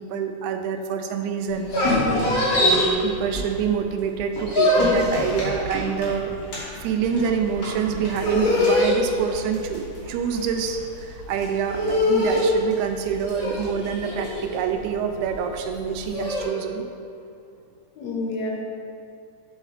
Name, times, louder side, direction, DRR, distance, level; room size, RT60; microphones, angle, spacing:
voice 1, 0.0-1.7 2.5-6.3 6.8-16.8, right 7 dB, 90° right, 6 dB, 2.0 m, -26 dB
sound 1, 1.5-3.8 4.1-16.5, left 1 dB, 40° left, 1.6 m, -24 dB
voice 2, 1.9-2.3 18.0-18.5, left 3 dB, 70° left, -1 dB, 2.1 m, -28 dB
7.0 x 5.0 x 4.1 m, 2.6 s
omnidirectional pair, 3.4 m